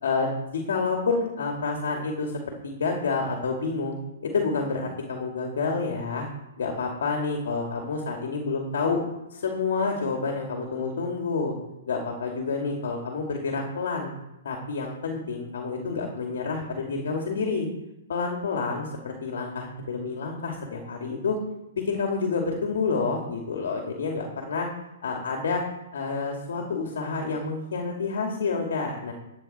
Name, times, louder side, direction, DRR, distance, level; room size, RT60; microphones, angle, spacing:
voice 1, 0.0-2.3 2.6-3.9 4.2-6.3 6.6-9.0 9.3-11.5 11.9-14.1 14.4-17.7 18.1-21.4 21.7-24.7 25.0-25.6 25.9-29.1, left 4 dB, 75° left, 2 dB, 2.5 m, -28 dB
11.5 x 9.3 x 4.4 m, 0.92 s
hypercardioid pair, 150°, 0 cm